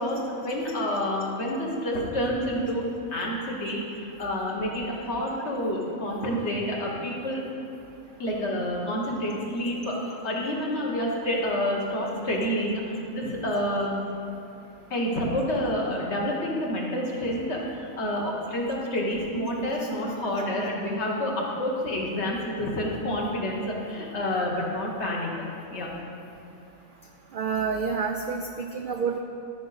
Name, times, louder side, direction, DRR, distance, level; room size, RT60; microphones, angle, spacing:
voice 1, 0.0-2.8 3.1-7.4 8.2-12.8 13.1-14.0 14.9-25.9, equal, 55° left, -2 dB, 1.5 m, -28 dB
voice 2, 27.3-29.2, right 5 dB, 75° right, 3 dB, 0.4 m, -28 dB
12.5 x 5.1 x 4.0 m, 2.8 s
omnidirectional pair, 1.4 m